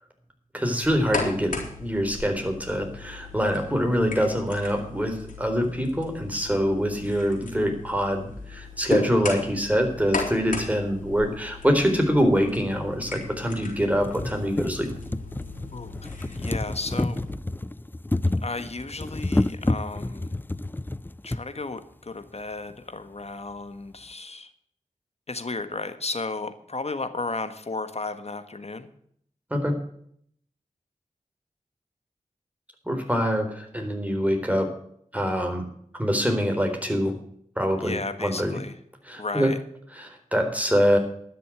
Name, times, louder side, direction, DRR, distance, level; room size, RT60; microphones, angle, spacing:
voice 1, 0.5-14.9 29.5-29.7 32.9-34.7 35.1-35.6 36.0-37.1 37.6-38.6 39.1-39.5 39.9-41.0, equal, 10° right, 4 dB, 3.9 m, -24 dB
sound 1, 0.8-17.3, left 4 dB, 85° left, 4.0 m, -37 dB
sound 2, 11.9-12.0 12.9-13.0 13.5-13.6 13.9-21.4 22.4-22.5 22.7-22.8, left 2 dB, 15° left, 0.5 m, -29 dB
voice 2, 16.3-17.2 18.4-20.4 21.2-24.5 25.3-28.9 37.8-38.8 39.2-39.6, left 3 dB, 50° left, 10 dB, 1.5 m, -34 dB
12.0 x 6.8 x 9.1 m, 0.66 s
cardioid pair, 45°, 14 cm